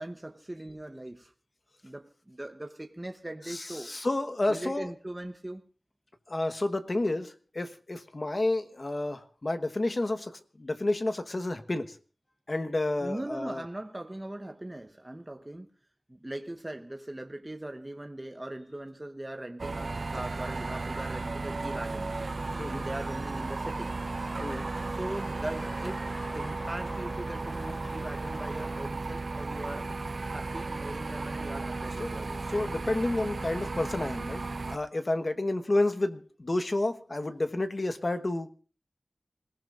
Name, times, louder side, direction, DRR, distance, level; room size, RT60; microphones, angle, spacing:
voice 1, 0.0-1.3 1.8-3.9 4.5-5.6 13.0-15.7 16.1-22.1 22.7-23.9 24.9-26.0 26.3-29.9 30.2-32.4, right 1 dB, 20° right, 1.0 m, -40 dB
voice 2, 3.5-4.9 6.3-12.0 12.5-13.6 22.6-22.8 24.4-24.7 32.0-32.1 32.5-38.5, left 2 dB, 45° left, 1.2 m, -30 dB
sound 1, 19.6-34.8, right 3 dB, 65° right, 0.7 m, -35 dB
sound 2, 22.3-28.8, equal, 25° left, 3.7 m, -45 dB
26.0 x 17.5 x 2.5 m
wide cardioid pair, 75°, 0 cm